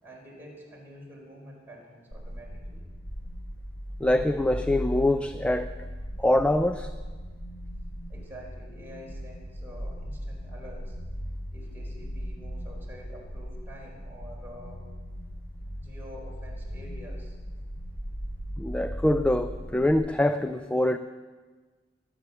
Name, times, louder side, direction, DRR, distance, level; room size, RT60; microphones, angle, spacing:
voice 1, 0.0-2.8 8.1-11.0 11.5-14.8 15.8-17.4, equal, 10° right, -3 dB, 4.5 m, -47 dB
sound 1, 2.1-19.9, equal, 50° left, 1.6 m, -38 dB
voice 2, 4.0-5.7 6.2-6.9 18.6-21.0, left 1 dB, 5° left, 10 dB, 0.4 m, -24 dB
23.0 x 8.7 x 7.1 m, 1.4 s
head